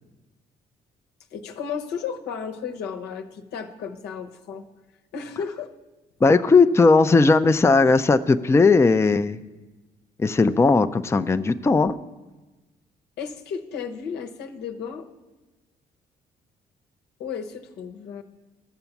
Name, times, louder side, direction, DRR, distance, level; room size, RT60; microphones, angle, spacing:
voice 1, 1.3-4.6 5.1-5.7 13.2-15.1 17.2-18.2, left 6 dB, 90° left, 4 dB, 1.0 m, -33 dB
voice 2, 6.2-9.4 10.2-12.0, left 3 dB, 15° left, 10 dB, 0.4 m, -17 dB
13.5 x 6.9 x 7.1 m, 1.1 s
cardioid pair, 95°, 17 cm